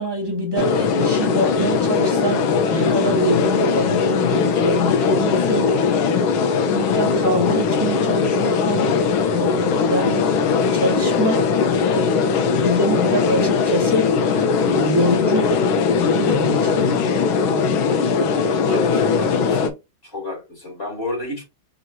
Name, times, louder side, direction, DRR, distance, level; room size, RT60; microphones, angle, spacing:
voice 1, 0.0-2.4 2.7-5.7 6.3-8.9 9.3-14.1 14.6-15.5 16.0-17.1, equal, 15° right, 1.7 m, -25 dB
sound 1, 0.6-19.7, left 5 dB, 85° left, 1.6 m, -19 dB
voice 2, 18.6-21.4, left 2 dB, 30° left, 2.7 m, -33 dB
4.3 x 3.9 x 2.7 m
omnidirectional pair, 2.2 m